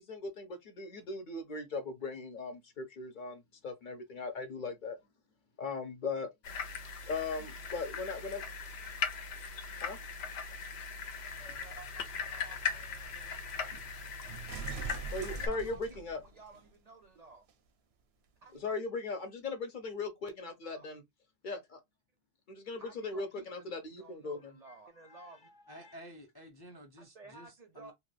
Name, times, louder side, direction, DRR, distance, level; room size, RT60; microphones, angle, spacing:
voice 1, 0.0-5.0 5.6-6.3 7.1-8.4 9.8-10.0 15.1-16.2 18.6-21.0 21.4-21.8 22.5-24.5 25.1-25.2 25.8-25.9, left 3 dB, 55° left, 0.8 m, -39 dB
sound 1, 6.4-15.5, left 5 dB, 90° left, 0.9 m, -39 dB
voice 2, 11.2-12.0 12.3-13.4 15.2-17.5 18.4-18.7 19.2-19.3 20.4-20.9 22.8-25.5 27.0-27.9, right 3 dB, 50° right, 0.5 m, -55 dB
sound 2, 11.3-16.7 17.5-17.6, right 5 dB, 80° right, 0.8 m, -46 dB
voice 3, 25.7-27.9, equal, 30° left, 0.4 m, -52 dB
2.9 x 2.2 x 3.2 m
omnidirectional pair, 1.1 m